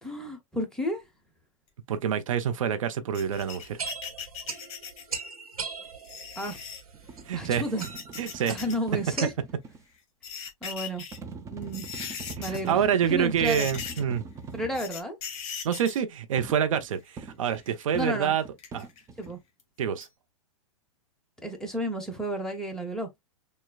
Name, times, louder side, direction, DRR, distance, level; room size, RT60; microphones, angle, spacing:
voice 1, 0.0-1.1 6.4-6.6 7.3-7.8 8.2-9.3 10.6-11.0 11.5-11.8 12.4-12.8 13.1-13.7 14.5-15.2 17.9-18.3 19.2-19.4 21.4-23.1, equal, 5° left, 1.1 m, -32 dB
voice 2, 1.9-3.8 7.3-7.6 8.2-8.5 12.4-14.2 15.6-18.4 18.7-18.9 19.8-20.1, right 8 dB, 65° right, 0.7 m, -27 dB
sound 1, 3.1-5.3 6.0-6.8 7.6-8.8 9.1-9.2 10.0-11.2 11.6-12.7 13.0-13.2 13.4-14.2 14.7-16.0 17.0-17.8 18.6-19.2 19.6-19.7 20.0-20.1, left 7 dB, 40° left, 1.5 m, -39 dB
sound 2, 3.2-9.3, right 5 dB, 85° right, 1.3 m, -40 dB
sound 3, 6.9-9.8 11.1-14.8 16.4-19.4, right 4 dB, 15° right, 0.6 m, -43 dB
6.4 x 2.2 x 2.2 m
hypercardioid pair, 115°, 18 cm